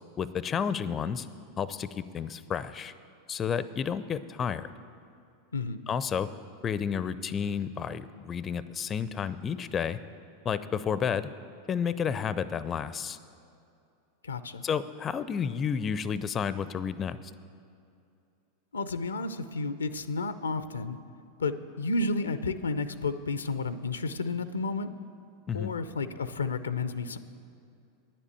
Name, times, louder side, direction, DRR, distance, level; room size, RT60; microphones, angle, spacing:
voice 1, 0.2-1.3 1.6-2.9 3.3-4.7 5.9-6.3 6.6-10.0 10.4-11.3 11.7-13.2 14.6-17.2 25.5-25.7, left 7 dB, 30° left, 15 dB, 0.4 m, -31 dB
voice 2, 14.2-14.6 18.7-21.0 21.4-24.9 25.5-27.2, left 3 dB, 85° left, 13 dB, 0.4 m, -31 dB
9.8 x 7.4 x 8.3 m, 2.5 s
figure-of-eight pair, 90°, 0 cm